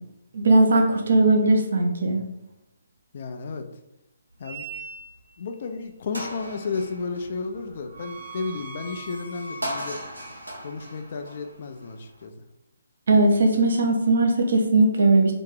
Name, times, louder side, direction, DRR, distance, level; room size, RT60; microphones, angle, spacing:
voice 1, 0.3-2.2 13.1-15.3, right 2 dB, 55° right, 3 dB, 0.7 m, -19 dB
voice 2, 3.1-3.7 4.4-4.6 5.4-10.0 10.6-12.3, left 4 dB, 45° left, 6 dB, 0.4 m, -33 dB
sound 1, 4.4-5.4 5.8-5.9 6.1-12.2, right 1 dB, 85° right, 0.9 m, -38 dB
2.9 x 2.7 x 3.7 m, 0.84 s
figure-of-eight pair, 135°, 0 cm